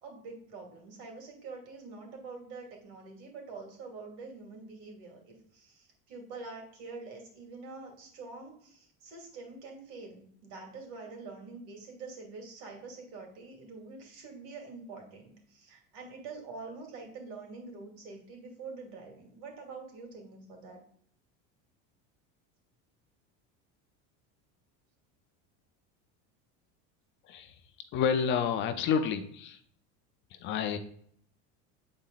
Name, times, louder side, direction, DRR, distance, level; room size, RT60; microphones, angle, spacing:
voice 1, 0.0-20.8, right 4 dB, 70° right, 2 dB, 2.7 m, -46 dB
voice 2, 27.9-29.6 30.4-30.8, left 7 dB, 35° left, 8 dB, 0.5 m, -29 dB
8.1 x 4.3 x 3.9 m, 0.62 s
cardioid pair, 170°, 33 cm